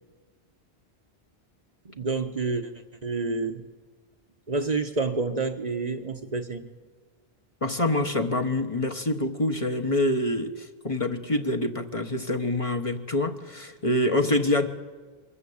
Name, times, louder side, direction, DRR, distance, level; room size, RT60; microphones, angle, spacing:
voice 1, 2.0-2.7 3.0-3.6 4.5-6.7, right 3 dB, 45° right, 6 dB, 1.1 m, -28 dB
voice 2, 7.6-14.7, left 1 dB, 35° left, 5 dB, 1.3 m, -26 dB
23.5 x 14.0 x 8.6 m, 1.4 s
omnidirectional pair, 1.0 m